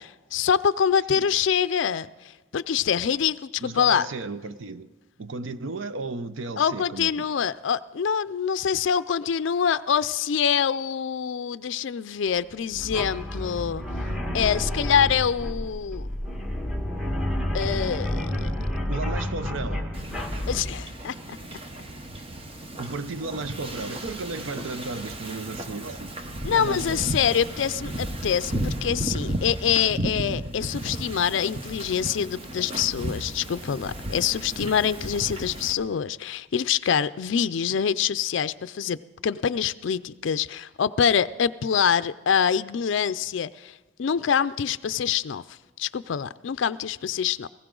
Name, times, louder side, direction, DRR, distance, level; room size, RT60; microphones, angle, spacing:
voice 1, 0.0-2.1 2.5-4.1 6.6-13.8 14.3-16.1 17.5-18.5 20.5-21.4 26.4-43.7 44.0-45.4 45.8-47.5, left 7 dB, 70° left, 0.4 m, -25 dB
voice 2, 3.6-4.9 5.2-7.2 18.9-19.9 22.8-26.1 26.5-27.0, right 3 dB, 75° right, 0.6 m, -34 dB
sound 1, 12.7-20.7, left 1 dB, ahead, 1.2 m, -30 dB
Wind / Ocean, 19.9-35.7, right 1 dB, 30° right, 0.9 m, -34 dB
20.0 x 16.5 x 3.8 m
head